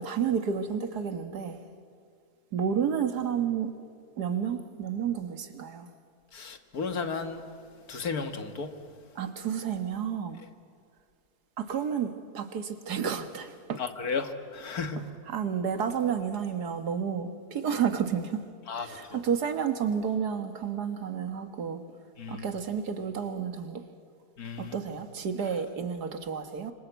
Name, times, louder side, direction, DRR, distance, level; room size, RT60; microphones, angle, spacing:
voice 1, 0.0-1.6 2.5-3.7 4.2-5.9 9.2-10.4 11.6-13.8 15.0-18.4 18.8-21.8 22.3-23.8 24.6-26.7, right 7 dB, 80° right, 8 dB, 2.1 m, -31 dB
voice 2, 6.3-7.4 7.9-8.7 13.8-15.0 18.7-19.2 22.2-22.5 24.4-24.8, left 5 dB, 70° left, 7 dB, 2.0 m, -34 dB
26.0 x 25.5 x 8.1 m, 2.2 s
omnidirectional pair, 1.7 m